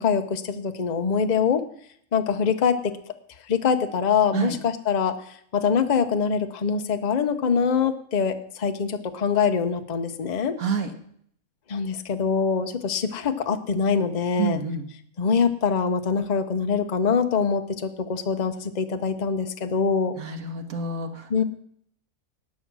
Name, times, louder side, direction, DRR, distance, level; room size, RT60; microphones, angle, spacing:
voice 1, 0.0-1.6 2.1-3.0 3.5-5.1 5.5-10.5 11.7-14.6 15.2-20.1 21.3-21.4, left 6 dB, 35° left, 8 dB, 0.8 m, -24 dB
voice 2, 10.6-10.9 14.4-14.9 20.2-21.4, right 5 dB, 65° right, 6 dB, 1.9 m, -28 dB
18.5 x 6.3 x 6.1 m, 0.66 s
omnidirectional pair, 1.6 m